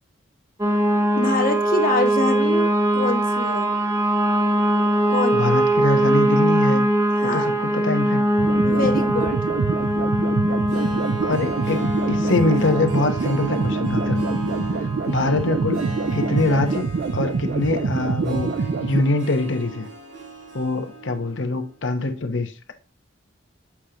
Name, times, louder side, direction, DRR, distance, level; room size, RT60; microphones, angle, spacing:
sound 1, 0.6-16.8, right 1 dB, 15° right, 0.7 m, -22 dB
voice 1, 1.2-3.7 5.1-5.6 7.2-7.6 8.6-9.5, left 2 dB, 50° left, 1.1 m, -25 dB
voice 2, 5.3-6.9 7.3-8.2 11.2-14.4 15.1-15.8 16.1-16.9 17.1-18.5 18.8-19.9 20.5-22.7, left 2 dB, 85° left, 1.0 m, -23 dB
sound 2, 8.4-19.0, right 4 dB, 60° right, 0.4 m, -26 dB
Harp, 10.5-21.5 21.8-21.9, right 4 dB, 80° right, 3.1 m, -37 dB
7.3 x 5.0 x 2.9 m
head